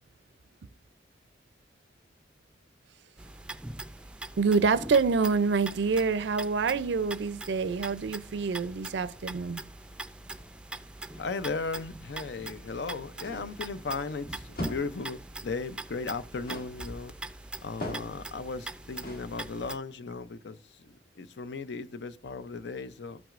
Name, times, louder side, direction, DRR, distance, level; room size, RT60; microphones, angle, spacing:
sound 1, 3.2-19.8, right 2 dB, 5° right, 0.4 m, -43 dB
voice 1, 4.4-9.6, right 4 dB, 75° right, 0.4 m, -26 dB
voice 2, 11.1-17.1 17.6-23.2, left 4 dB, 70° left, 0.5 m, -36 dB
sound 2, 13.2-13.6 14.5-15.0 16.5-16.8 17.8-18.3 19.0-19.3, left 1 dB, 55° left, 1.6 m, -38 dB
13.5 x 6.0 x 2.4 m
head